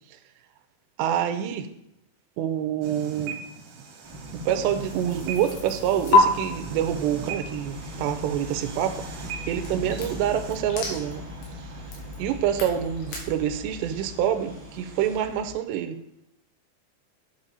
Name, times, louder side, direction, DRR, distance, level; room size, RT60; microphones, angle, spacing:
voice 1, 1.0-1.7 2.4-3.4 4.3-9.1 9.5-11.2 12.2-16.0, right 10 dB, 80° right, 8 dB, 2.8 m, -26 dB
sound 1, 2.8-10.5, right 5 dB, 60° right, 2.4 m, -40 dB
sound 2, 4.0-15.5, equal, 35° right, 2.2 m, -40 dB
sound 3, 4.8-6.2 9.6-13.2, left 4 dB, 80° left, 4.0 m, -28 dB
8.7 x 7.7 x 4.1 m, 0.82 s
omnidirectional pair, 5.1 m